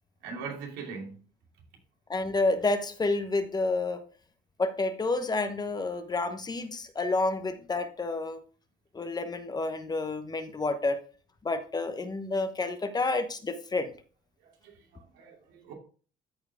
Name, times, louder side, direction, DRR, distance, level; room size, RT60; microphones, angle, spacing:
voice 1, 0.2-1.2 14.6-15.7, right 5 dB, 85° right, 2.8 m, -41 dB
voice 2, 2.1-4.0 4.6-8.4 8.9-11.0 11.4-13.9, left 3 dB, 25° left, 1.0 m, -29 dB
13.0 x 4.7 x 3.5 m
cardioid pair, 110°, 17 cm